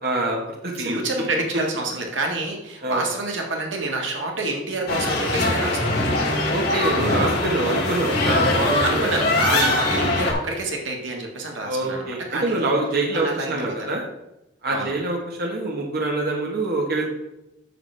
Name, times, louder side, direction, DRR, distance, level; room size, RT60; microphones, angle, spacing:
voice 1, 0.0-1.0 2.8-3.1 6.5-9.1 9.5-9.7 11.6-14.0 14.6-17.1, right 2 dB, 55° right, -1 dB, 1.3 m, -25 dB
voice 2, 0.7-6.1 8.8-12.7 13.1-13.7 14.7-14.9, right 2 dB, 90° right, 1 dB, 1.7 m, -28 dB
sound 1, 4.9-10.3, left 2 dB, 55° left, 2.6 m, -22 dB
9.3 x 7.0 x 3.4 m, 0.90 s
head